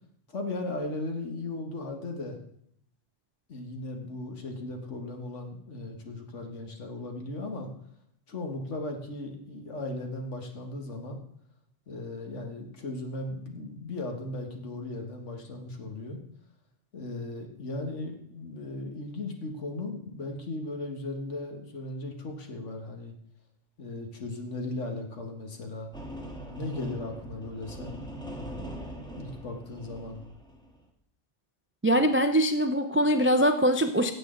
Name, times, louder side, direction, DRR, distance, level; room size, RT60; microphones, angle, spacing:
voice 1, 0.3-2.4 3.5-7.7 8.3-11.2 11.9-16.2 16.9-23.1 23.8-25.9 26.5-28.8 29.2-30.2, left 2 dB, 80° left, 3 dB, 1.9 m, -37 dB
sound 1, 25.9-30.8, right 1 dB, 5° left, 1.6 m, -42 dB
voice 2, 31.8-34.1, equal, 20° right, 7 dB, 0.4 m, -23 dB
16.5 x 7.9 x 3.9 m, 0.70 s
omnidirectional pair, 1.2 m